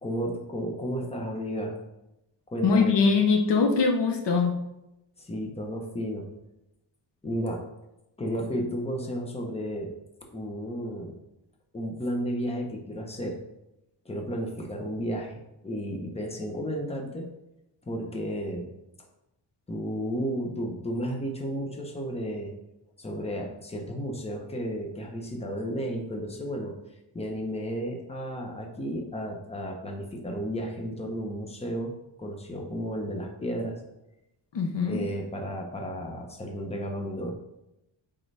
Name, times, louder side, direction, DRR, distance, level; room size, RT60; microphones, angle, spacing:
voice 1, 0.0-1.8 2.5-2.9 5.2-6.3 7.2-7.6 8.2-9.9 10.3-11.2 11.7-13.4 14.0-17.3 17.8-18.7 19.7-22.5 23.0-26.7 27.1-31.9 32.2-33.8 34.9-37.3, equal, 15° left, 1 dB, 0.9 m, -33 dB
voice 2, 2.6-4.5 34.5-35.0, left 4 dB, 60° left, 4 dB, 0.8 m, -22 dB
8.4 x 3.8 x 3.4 m, 0.90 s
wide cardioid pair, 145°, 48 cm